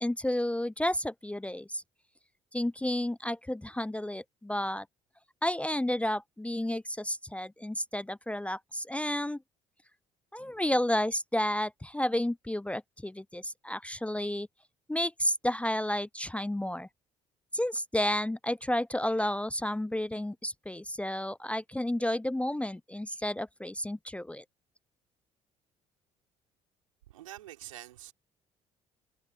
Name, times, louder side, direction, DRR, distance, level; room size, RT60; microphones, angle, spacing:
voice 1, 0.0-1.8 2.5-4.9 5.4-9.4 10.3-14.5 14.9-16.9 17.5-24.4, left 1 dB, 5° left, 0.7 m, -31 dB
voice 2, 27.1-28.1, right 14 dB, 80° right, 5.7 m, -46 dB
figure-of-eight pair, 50°, 17 cm